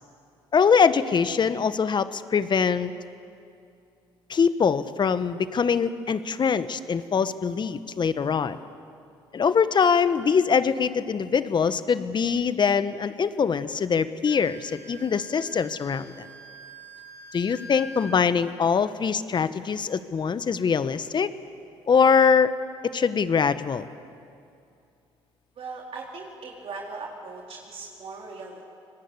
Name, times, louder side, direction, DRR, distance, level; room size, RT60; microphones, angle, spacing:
voice 1, 0.5-2.9 4.3-8.6 9.3-16.3 17.3-21.3 21.9-22.5 22.9-23.9, left 6 dB, 40° left, 13 dB, 1.3 m, -23 dB
Wind instrument woodwind instrument, 14.2-18.2, equal, 15° left, 4.3 m, -45 dB
voice 2, 25.6-28.6, right 4 dB, 55° right, -2 dB, 3.8 m, -39 dB
26.5 x 20.0 x 8.3 m, 2.5 s
hypercardioid pair, 65°, 12 cm